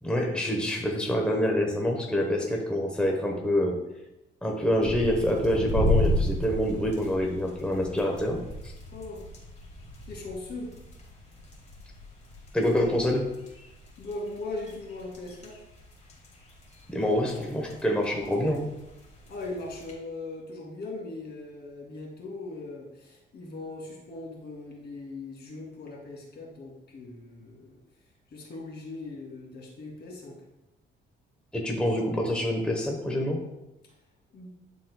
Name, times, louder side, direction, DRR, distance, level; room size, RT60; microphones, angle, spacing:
voice 1, 0.0-3.8 4.4-8.7 12.5-13.3 16.9-18.7 31.5-33.4, equal, 5° left, 0 dB, 1.0 m, -26 dB
sound 1, 4.8-19.9, left 1 dB, 35° left, 2.1 m, -35 dB
voice 2, 8.9-9.2 10.1-10.7 14.0-15.5 19.3-27.8 28.3-30.4 34.3-34.5, left 2 dB, 55° left, -2 dB, 2.4 m, -39 dB
11.5 x 4.2 x 2.3 m, 0.94 s
cardioid pair, 90°, 20 cm